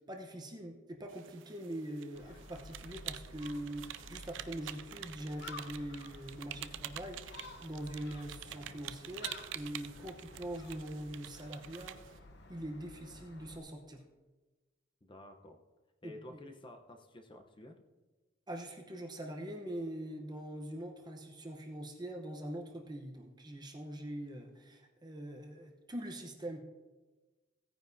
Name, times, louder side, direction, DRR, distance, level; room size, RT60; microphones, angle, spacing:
voice 1, 0.1-12.2 12.5-14.0 16.0-16.4 18.5-26.6, right 1 dB, 20° right, 2 dB, 0.9 m, -43 dB
sound 1, 1.1-12.2, right 12 dB, 65° right, 0.4 m, -47 dB
Gull seagull, 2.1-13.6, left 2 dB, 60° left, 1.1 m, -52 dB
voice 2, 15.0-15.6 16.0-17.8, left 1 dB, 25° left, 5 dB, 0.8 m, -51 dB
16.5 x 9.4 x 2.7 m, 1.2 s
head